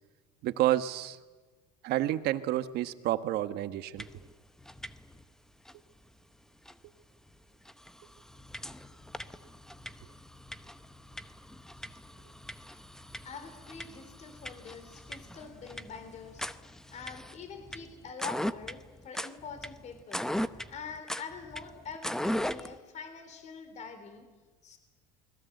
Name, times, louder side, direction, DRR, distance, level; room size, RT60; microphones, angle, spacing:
voice 1, 0.4-1.2 1.8-4.1, right 14 dB, 55° right, 11 dB, 1.4 m, -29 dB
sound 1, 4.0-4.3 4.6-5.2 5.6-5.7 6.6-6.7 7.3-7.4 7.6-22.8, left 1 dB, 5° left, 0.8 m, -39 dB
voice 2, 13.2-16.5 16.9-20.3 20.7-24.3 24.6-24.8, left 5 dB, 35° left, 8 dB, 3.6 m, -45 dB
29.0 x 21.0 x 7.9 m, 1.3 s
supercardioid pair, 130°, 20 cm